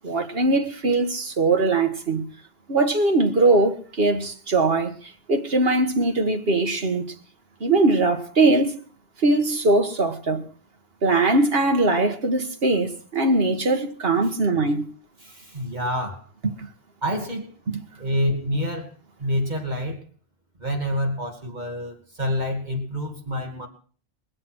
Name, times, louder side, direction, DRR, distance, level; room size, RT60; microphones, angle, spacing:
voice 1, 0.0-2.2 2.7-4.9 5.3-7.0 7.6-8.7 9.2-10.5 11.0-14.9 16.4-16.7 17.7-17.8, right 2 dB, 70° right, 1.8 m, -21 dB
voice 2, 15.2-16.3 17.0-17.5 18.0-18.9 19.2-20.0 20.6-23.7, equal, 45° right, 2.7 m, -27 dB
22.0 x 7.7 x 6.1 m
omnidirectional pair, 1.0 m